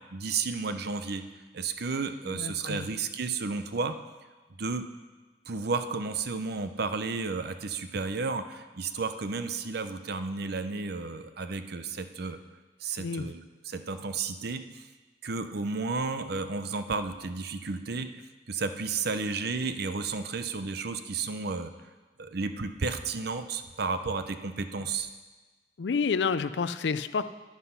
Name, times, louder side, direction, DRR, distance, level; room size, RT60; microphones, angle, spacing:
voice 1, 0.1-1.2 1.5-4.0 4.5-4.8 5.5-12.4 12.8-14.8 15.2-18.1 18.5-21.7 22.2-25.1, right 4 dB, 60° right, 10 dB, 0.7 m, -32 dB
voice 2, 2.3-2.9 13.0-13.3 24.8-24.9 25.8-27.2, left 5 dB, 70° left, 13 dB, 0.5 m, -29 dB
9.9 x 9.6 x 5.7 m, 1.3 s
head